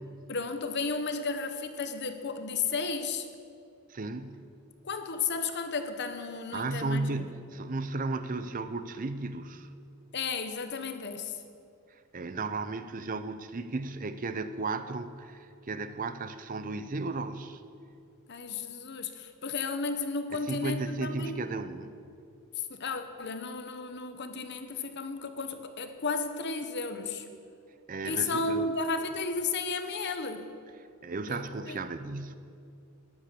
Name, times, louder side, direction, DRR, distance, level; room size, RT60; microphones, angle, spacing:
voice 1, 0.3-3.3 4.8-7.2 10.1-11.3 18.3-21.4 22.6-27.3 28.0-30.5 31.3-31.8, left 4 dB, 50° left, 8 dB, 1.0 m, -33 dB
voice 2, 3.9-4.4 6.5-9.7 12.1-17.6 20.3-22.0 27.9-28.7 31.0-32.4, right 3 dB, 40° right, 11 dB, 0.6 m, -34 dB
13.5 x 10.5 x 6.9 m, 2.4 s
head